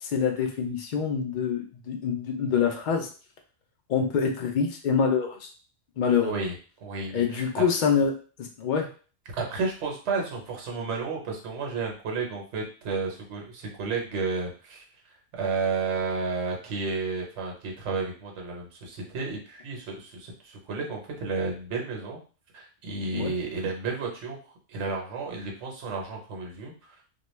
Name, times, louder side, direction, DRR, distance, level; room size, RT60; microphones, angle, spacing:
voice 1, 0.0-3.1 3.9-5.5 6.0-6.3 7.1-8.9 23.1-23.3, left 6 dB, 65° left, 3 dB, 0.5 m, -26 dB
voice 2, 6.2-6.5 6.8-7.6 9.4-14.8 15.3-22.2 22.5-24.4 24.7-26.9, right 4 dB, 65° right, 0 dB, 1.1 m, -32 dB
2.3 x 2.3 x 3.0 m, 0.38 s
omnidirectional pair, 1.3 m